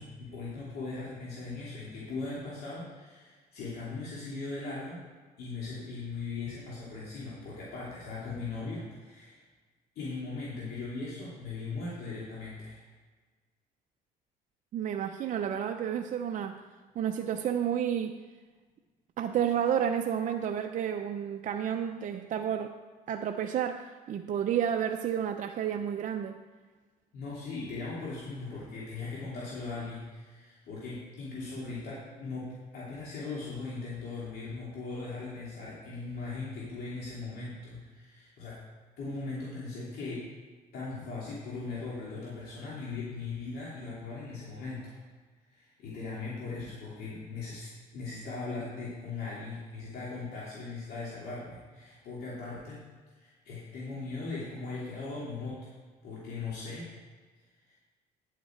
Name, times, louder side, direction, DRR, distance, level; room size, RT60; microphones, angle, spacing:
voice 1, 0.0-5.1 5.4-9.4 10.0-12.8 27.1-38.6 39.0-40.3 40.7-44.9 45.5-52.8 53.2-55.7 56.0-56.9 57.7-57.8, left 3 dB, 65° left, -6 dB, 2.7 m, -39 dB
voice 2, 14.7-16.6 17.0-18.2 19.2-22.7 23.1-26.4, right 9 dB, 50° right, 5 dB, 0.6 m, -31 dB
10.0 x 8.4 x 4.5 m, 1.4 s
cardioid pair, 110°, 17 cm